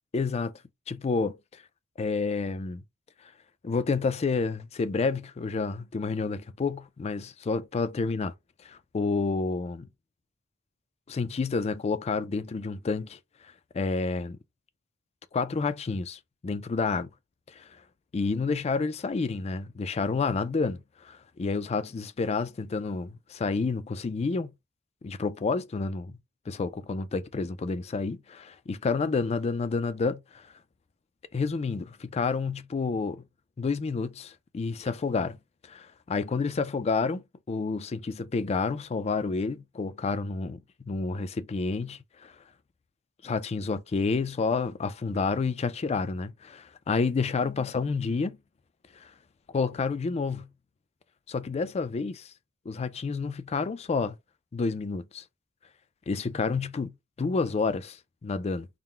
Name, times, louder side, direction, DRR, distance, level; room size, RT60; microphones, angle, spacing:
voice 1, 0.1-0.5 0.9-1.6 2.0-2.8 3.6-8.3 8.6-9.9 11.1-13.2 13.7-14.4 15.3-17.1 17.5-17.7 18.1-24.5 25.0-26.2 26.5-30.5 31.3-33.2 33.6-35.4 35.7-42.3 43.2-48.4 48.9-49.1 49.5-50.5 51.3-52.3 52.7-54.2 54.5-55.2 56.1-58.7, left 4 dB, 30° left, 0.3 m, -29 dB
3.7 x 2.1 x 4.3 m
head